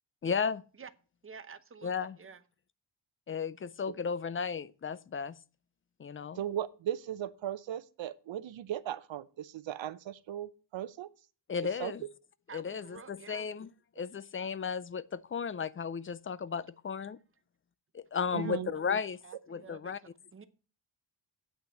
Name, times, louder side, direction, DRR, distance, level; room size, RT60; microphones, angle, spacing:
voice 1, 0.2-0.6 1.8-2.2 3.3-5.4 6.0-6.4 11.5-12.1 12.5-13.7 14.0-17.2 17.9-19.2 19.5-20.0, left 6 dB, 30° left, 0.4 m, -34 dB
voice 2, 1.2-2.4 12.5-13.5 18.3-18.6 19.2-19.9 20.3-20.5, right 6 dB, 30° right, 0.8 m, -50 dB
voice 3, 6.4-11.1 11.8-11.9 18.3-18.7, right 11 dB, 80° right, 0.7 m, -37 dB
8.8 x 5.8 x 7.6 m
wide cardioid pair, 175°, 45 cm